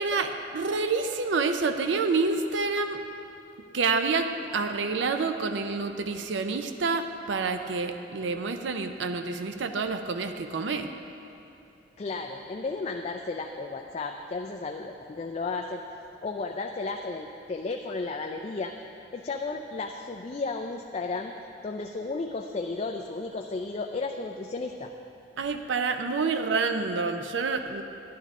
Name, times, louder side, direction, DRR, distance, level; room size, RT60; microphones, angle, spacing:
voice 1, 0.0-3.0 3.7-10.9 25.4-27.8, right 4 dB, 80° right, 7 dB, 0.5 m, -28 dB
voice 2, 12.0-15.8 16.2-18.7 19.1-21.3 21.6-24.9, left 3 dB, 35° left, 3 dB, 0.4 m, -33 dB
11.0 x 11.0 x 3.7 m, 2.7 s
head